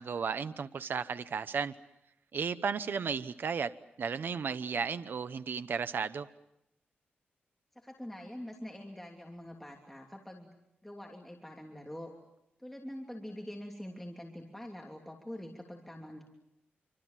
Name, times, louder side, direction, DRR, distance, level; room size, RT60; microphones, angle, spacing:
voice 1, 0.0-1.7 2.3-3.7 4.0-6.3, right 6 dB, 60° right, 12 dB, 0.9 m, -34 dB
voice 2, 7.8-10.5 10.8-12.1 12.6-16.2, left 1 dB, 5° left, 0 dB, 3.1 m, -45 dB
27.5 x 25.5 x 7.5 m, 0.85 s
wide cardioid pair, 120°, 4 cm